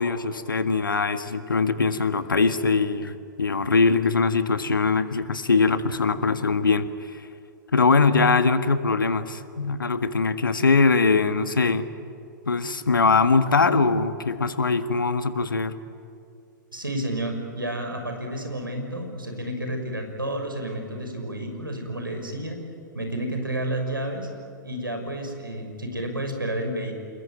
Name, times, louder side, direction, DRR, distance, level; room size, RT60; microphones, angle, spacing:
voice 1, 0.0-7.3 7.7-11.9 12.5-15.7, left 4 dB, 75° left, 10 dB, 1.6 m, -22 dB
voice 2, 16.7-22.6 22.9-24.3 24.6-26.9, right 1 dB, 90° right, 4 dB, 6.0 m, -30 dB
28.5 x 21.5 x 9.3 m, 2.4 s
figure-of-eight pair, 110°, 11 cm